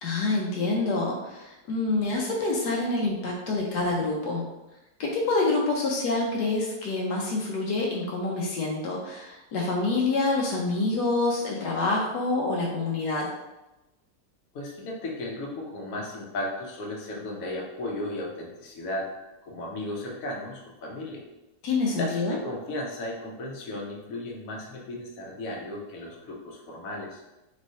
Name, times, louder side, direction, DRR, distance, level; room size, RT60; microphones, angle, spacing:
voice 1, 0.0-4.4 5.0-13.3 21.6-22.4, left 3 dB, 80° left, -2 dB, 1.3 m, -27 dB
voice 2, 14.5-19.1 19.5-21.2 22.0-27.2, left 1 dB, 60° left, -2 dB, 1.2 m, -35 dB
4.4 x 3.1 x 2.7 m, 0.98 s
omnidirectional pair, 1.8 m